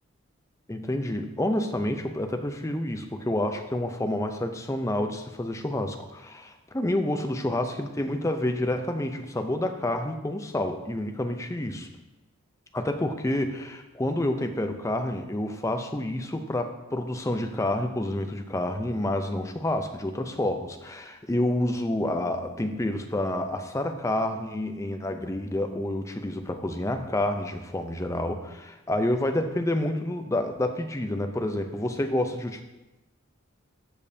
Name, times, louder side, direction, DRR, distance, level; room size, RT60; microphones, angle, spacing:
voice 1, 0.7-11.9 12.7-32.6, left 1 dB, 15° left, 6 dB, 0.5 m, -29 dB
13.5 x 5.3 x 2.7 m, 1.0 s
head